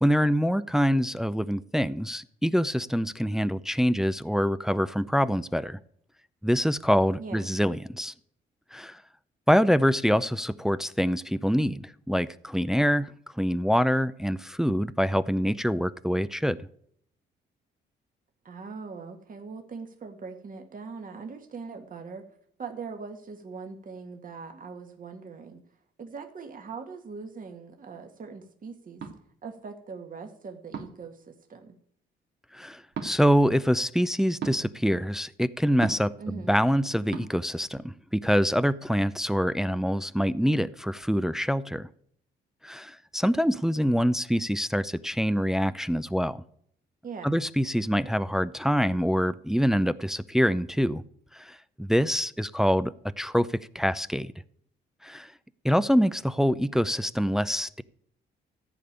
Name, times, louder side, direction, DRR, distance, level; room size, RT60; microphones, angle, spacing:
voice 1, 0.0-5.8 6.4-8.1 8.7-9.0 9.5-16.6 32.5-41.9 42.6-46.4 47.2-51.0 51.3-53.5 53.7-54.3 55.0-55.3 55.6-57.8, equal, ahead, 0.5 m, -25 dB
voice 2, 7.2-7.5 18.4-22.2 22.6-25.6 26.0-29.0 29.4-31.8 36.2-36.5 47.0-47.4, right 5 dB, 45° right, 1.9 m, -41 dB
sound 1, 29.0-29.2 30.7-31.1 32.9-33.1 34.4-34.6 35.8-36.1 37.1-37.3, right 6 dB, 60° right, 2.4 m, -35 dB
14.5 x 5.2 x 8.8 m
cardioid pair, 90°, 20 cm